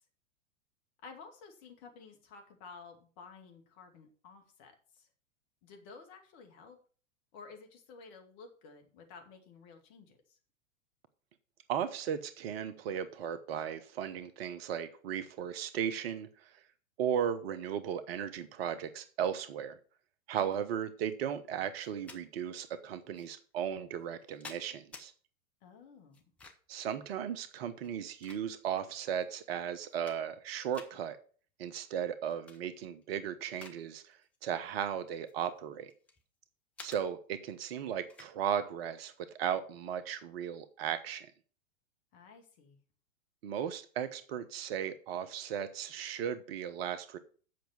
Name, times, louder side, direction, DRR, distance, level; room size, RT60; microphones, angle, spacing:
voice 1, 1.0-5.1 5.6-6.8 7.3-10.4 25.6-26.2 42.1-42.8, left 4 dB, 40° left, 4 dB, 2.3 m, -53 dB
voice 2, 11.7-16.6 17.0-19.8 20.3-25.1 26.7-31.2 31.6-35.9 36.8-39.1 39.4-41.3 43.4-47.2, right 9 dB, 45° right, 12 dB, 1.0 m, -36 dB
sound 1, 21.8-22.2 23.1-23.3 24.0-25.1 26.1-26.8 27.7-28.8 29.4-29.5 29.8-30.4 30.7-30.9 32.3-32.6 33.0-33.8 34.1-34.4 35.1-36.2 36.8-37.0 38.1-38.3, left 4 dB, 5° left, 0.3 m, -52 dB
7.8 x 5.8 x 6.9 m, 0.41 s
figure-of-eight pair, 100°, 41 cm